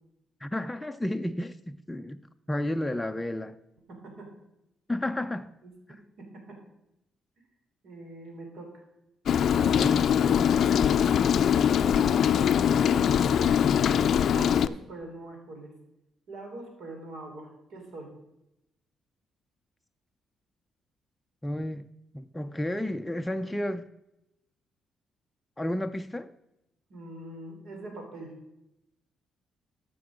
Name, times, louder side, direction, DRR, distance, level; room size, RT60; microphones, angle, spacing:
voice 1, 0.4-2.2 2.5-3.6 4.9-5.5 9.6-10.1 21.4-21.9 22.1-23.9 25.6-26.3, left 1 dB, 10° left, 0.5 m, -32 dB
voice 2, 3.9-4.3 5.6-6.6 7.8-8.8 10.2-10.4 11.8-13.5 14.3-15.7 16.3-18.1 26.9-28.3, right 2 dB, 70° right, 3.2 m, -43 dB
Rain, 9.3-14.7, left 8 dB, 65° left, 0.4 m, -22 dB
13.0 x 6.1 x 5.1 m
cardioid pair, 90°, 0 cm